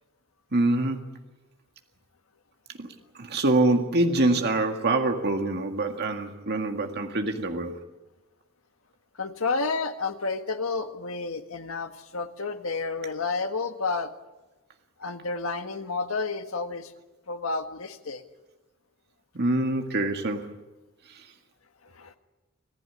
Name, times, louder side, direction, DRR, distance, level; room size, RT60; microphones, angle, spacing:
voice 1, 0.5-1.0 2.8-2.9 3.2-7.8 19.4-20.5, right 2 dB, 55° right, 4 dB, 1.9 m, -25 dB
voice 2, 9.2-14.1 15.0-16.9 17.3-18.2 21.8-22.2, left 4 dB, 80° left, 7 dB, 1.6 m, -30 dB
26.0 x 15.0 x 9.8 m, 1.1 s
head